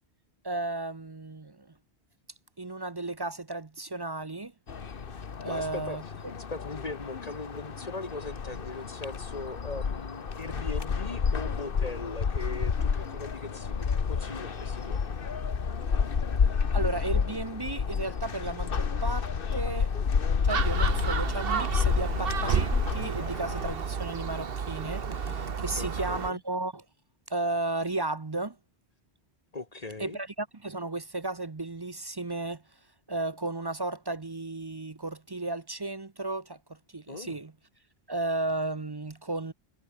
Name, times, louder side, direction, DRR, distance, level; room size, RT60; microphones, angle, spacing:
voice 1, 0.4-1.7 2.6-4.5 5.4-6.3 16.7-19.9 20.4-26.8 27.3-28.6 30.0-32.6 33.1-37.5 38.1-39.5, right 2 dB, 25° right, 0.7 m, -34 dB
sound 1, 4.7-23.8, left 6 dB, 55° left, 1.4 m, -30 dB
voice 2, 5.5-6.0 6.5-15.0 25.8-26.4 29.5-30.2 37.1-37.4, left 3 dB, 35° left, 1.3 m, -39 dB
Gull seagull, 20.5-26.3, right 6 dB, 60° right, 1.4 m, -31 dB
omnidirectional pair, 1.1 m